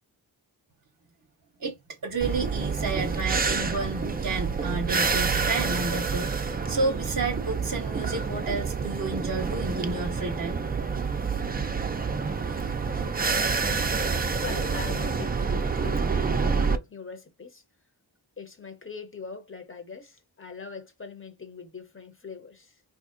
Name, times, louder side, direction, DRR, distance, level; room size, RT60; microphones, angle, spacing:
voice 1, 1.6-10.6, right 3 dB, 45° right, 0.7 m, -31 dB
sound 1, 2.2-16.8, right 5 dB, 25° right, 0.3 m, -28 dB
voice 2, 14.1-17.6 18.4-22.8, left 5 dB, 30° left, 0.7 m, -42 dB
3.4 x 2.6 x 2.5 m
wide cardioid pair, 95°, 45 cm